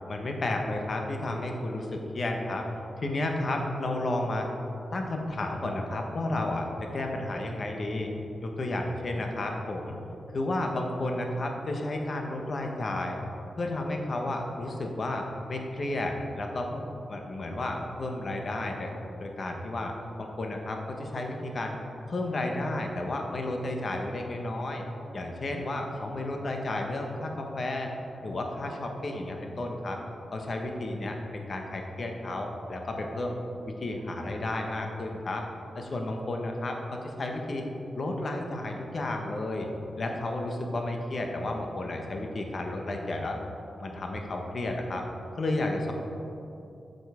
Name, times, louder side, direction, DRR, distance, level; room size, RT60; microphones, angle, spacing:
voice 1, 0.1-2.7 3.0-4.5 4.9-6.7 6.9-8.1 8.4-10.0 10.3-13.2 13.6-16.8 17.1-18.9 19.2-21.7 22.1-24.8 25.1-27.9 28.2-30.0 30.3-33.3 33.8-35.4 35.7-37.7 37.9-39.7 40.0-43.4 43.8-45.0 45.4-45.9, left 2 dB, 50° left, 2 dB, 0.9 m, -32 dB
7.8 x 5.3 x 4.8 m, 2.7 s
wide cardioid pair, 115°, 0 cm